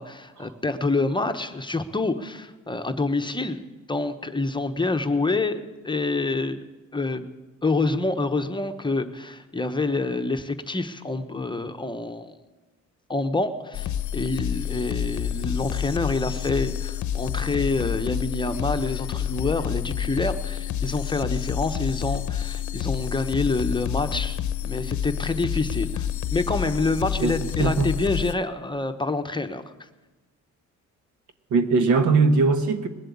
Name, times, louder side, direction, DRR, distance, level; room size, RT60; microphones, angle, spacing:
voice 1, 0.0-3.6 3.9-6.6 6.9-7.3 7.6-12.3 13.1-29.6, left 3 dB, 15° left, 7 dB, 0.9 m, -27 dB
sound 1, 13.7-28.3, left 10 dB, 70° left, 0.7 m, -29 dB
voice 2, 31.5-32.9, right 4 dB, 75° right, 9 dB, 1.3 m, -20 dB
20.5 x 7.6 x 8.5 m, 1.2 s
cardioid pair, 90°, 30 cm